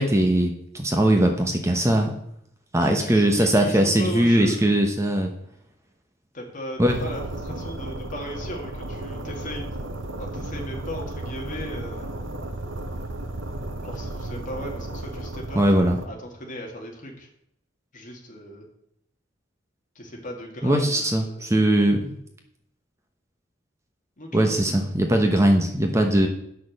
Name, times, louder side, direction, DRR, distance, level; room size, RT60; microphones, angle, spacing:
voice 1, 0.0-2.1 2.7-5.3 6.8-7.0 15.5-16.0 20.6-22.1 24.3-26.3, right 1 dB, 15° right, 3 dB, 0.9 m, -20 dB
voice 2, 2.8-4.6 6.3-9.9 10.2-12.1 13.8-15.6 16.0-17.3 17.9-18.6 20.0-21.5 24.2-24.9, equal, 45° left, 0 dB, 2.3 m, -36 dB
sound 1, 6.9-16.1, right 2 dB, 85° right, 0.9 m, -34 dB
9.2 x 6.3 x 6.5 m, 0.75 s
head